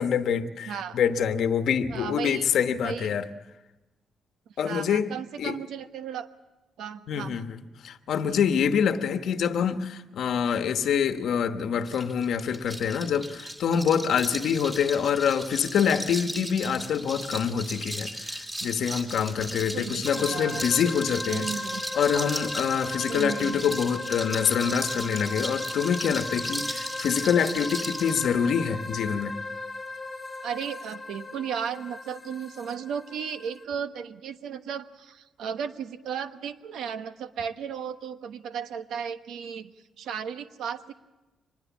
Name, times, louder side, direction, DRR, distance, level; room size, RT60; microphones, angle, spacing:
voice 1, 0.0-3.2 4.6-5.1 5.4-5.6 7.1-21.5 21.9-29.3, left 7 dB, 65° left, 8 dB, 1.1 m, -26 dB
voice 2, 0.7-1.0 1.9-2.5 2.8-3.1 4.6-6.3 6.8-7.4 8.2-8.4 19.5-20.6 21.3-21.8 23.1-23.8 30.4-39.7 40.0-40.9, right 7 dB, 85° right, 9 dB, 1.2 m, -35 dB
sound 1, 11.9-28.3, right 1 dB, 15° right, 2.5 m, -36 dB
sound 2, 20.1-33.6, left 2 dB, 20° left, 1.5 m, -37 dB
24.5 x 20.5 x 7.2 m, 1.1 s
cardioid pair, 155°, 0 cm